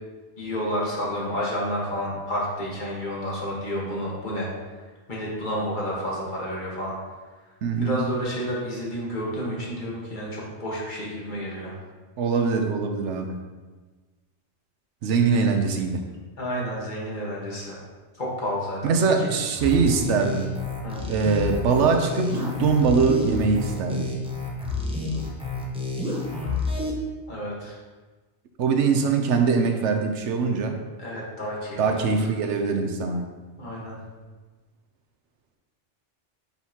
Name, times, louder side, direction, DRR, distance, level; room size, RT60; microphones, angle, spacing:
voice 1, 0.4-4.5 5.1-6.9 7.8-11.8 16.4-17.8 18.2-19.3 20.8-21.0 27.3-27.8 31.0-32.1 33.6-34.0, equal, 45° left, -4 dB, 1.5 m, -30 dB
voice 2, 7.6-8.0 12.2-13.4 15.0-16.0 18.8-20.5 21.1-24.1 28.6-30.8 31.8-33.2, right 5 dB, 80° right, 5 dB, 1.0 m, -22 dB
sound 1, 19.5-26.9, left 3 dB, 5° right, 0.8 m, -30 dB
6.1 x 5.5 x 2.8 m, 1.3 s
omnidirectional pair, 1.2 m